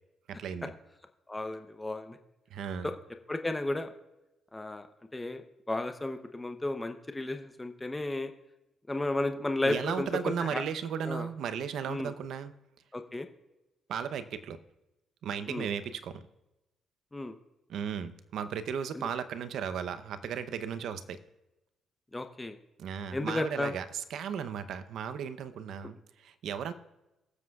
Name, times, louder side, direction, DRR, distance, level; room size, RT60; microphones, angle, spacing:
voice 1, 0.3-0.7 2.5-2.9 9.6-12.5 13.9-14.6 15.2-16.3 17.7-21.2 22.8-26.7, right 7 dB, 75° right, 12 dB, 0.7 m, -35 dB
voice 2, 1.3-2.2 2.8-2.9 3.3-3.9 4.5-4.9 5.1-5.4 5.7-8.3 8.9-10.1 10.5-10.6 11.1-11.3 11.9-12.1 12.9-13.3 15.5-15.7 17.1-17.3 22.1-22.6 23.1-23.7, left 2 dB, 15° left, 7 dB, 0.8 m, -33 dB
22.5 x 7.5 x 2.4 m, 0.98 s
cardioid pair, 90°, 0 cm